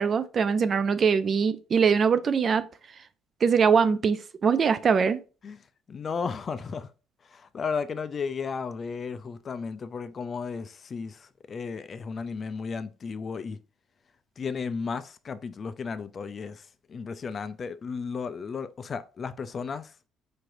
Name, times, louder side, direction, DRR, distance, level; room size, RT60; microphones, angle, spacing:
voice 1, 0.0-2.7 3.4-5.2, right 6 dB, 40° right, 0.4 m, -22 dB
voice 2, 5.9-6.9 7.2-13.6 14.4-19.9, left 5 dB, 35° left, 0.3 m, -34 dB
5.7 x 3.2 x 2.5 m
cardioid pair, 135°, 0 cm